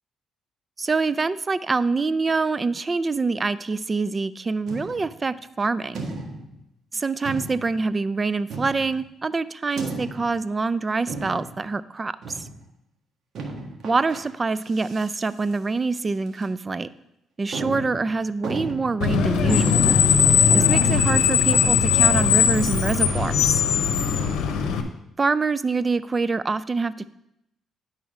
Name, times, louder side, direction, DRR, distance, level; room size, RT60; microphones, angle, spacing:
voice 1, 0.8-6.1 6.9-12.4 13.8-16.9 17.4-20.0 20.5-23.6 25.2-27.1, right 4 dB, 30° right, 15 dB, 0.4 m, -25 dB
sound 1, 4.7-5.2 5.9-6.6 7.2-7.8 8.5-9.1 9.8-10.4 11.1-11.6 12.2-12.6 13.3-14.2 14.6-15.2 15.5-15.6 16.3-16.4 16.9-17.0 17.5-19.1 19.5-19.9 20.2-20.3 20.5-21.8, right 3 dB, 65° right, 1.5 m, -34 dB
Screech, 19.0-24.8, left 7 dB, 85° left, 0.8 m, -19 dB
10.0 x 4.1 x 4.9 m, 0.81 s
cardioid pair, 90°, 0 cm